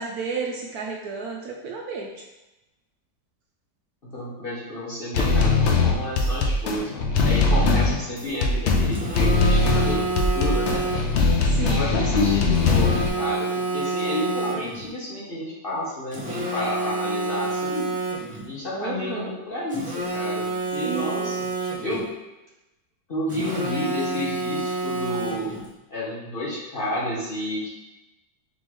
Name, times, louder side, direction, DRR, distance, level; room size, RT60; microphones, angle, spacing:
voice 1, 0.0-2.1 11.5-11.9 18.7-19.3 20.8-21.3, right 5 dB, 70° right, 0 dB, 1.0 m, -32 dB
voice 2, 4.0-6.9 7.2-10.8 11.7-17.9 18.5-20.4 20.7-22.0 23.1-25.5 25.9-27.7, left 1 dB, 40° left, -8 dB, 1.0 m, -30 dB
sound 1, 5.1-13.1, left 3 dB, 85° left, 0.6 m, -21 dB
Telephone, 8.9-11.3 12.5-14.9 16.1-18.5 19.7-22.1 23.3-25.7, right 2 dB, 10° right, 0.3 m, -28 dB
4.1 x 3.6 x 3.1 m, 0.99 s
omnidirectional pair, 1.8 m